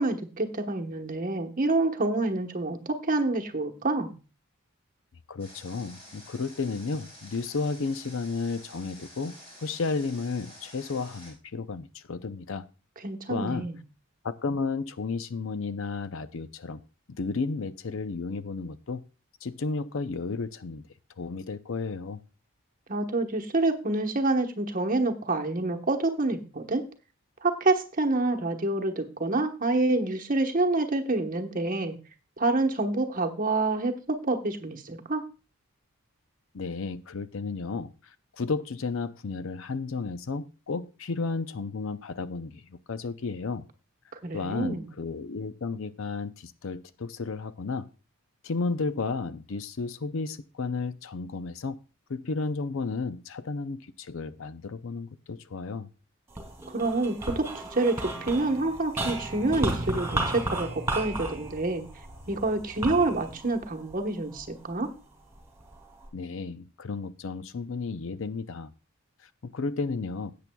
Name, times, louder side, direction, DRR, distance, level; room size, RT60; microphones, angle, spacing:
voice 1, 0.0-4.1 13.0-13.8 22.9-26.8 27.4-32.0 32.4-35.2 44.2-44.9 56.7-61.9 62.3-64.9, right 2 dB, 40° right, 1.1 m, -27 dB
voice 2, 5.3-12.6 13.3-13.7 14.2-16.8 17.1-19.1 19.4-20.8 21.2-22.2 36.5-43.6 44.3-47.9 48.4-51.8 52.1-55.9 66.1-68.7 69.2-70.3, left 4 dB, 60° left, 0.5 m, -33 dB
Water, 5.4-11.3, left 1 dB, 30° left, 4.7 m, -50 dB
Metal Pressure Meter Scraped, 56.3-64.8 65.3-66.1, right 1 dB, 15° right, 2.6 m, -34 dB
17.0 x 8.4 x 2.3 m
head